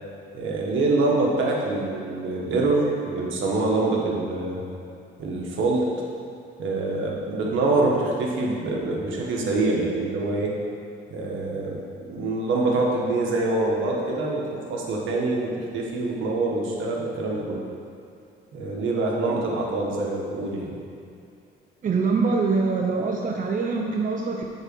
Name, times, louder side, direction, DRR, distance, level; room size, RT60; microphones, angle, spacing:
voice 1, 0.3-4.6 5.2-5.9 6.6-10.5 11.1-17.6 18.5-20.8, right 2 dB, 80° right, -2 dB, 1.5 m, -25 dB
voice 2, 21.8-24.5, right 4 dB, 40° right, 0 dB, 0.7 m, -24 dB
7.9 x 4.1 x 6.2 m, 2.5 s
cardioid pair, 90°, 20 cm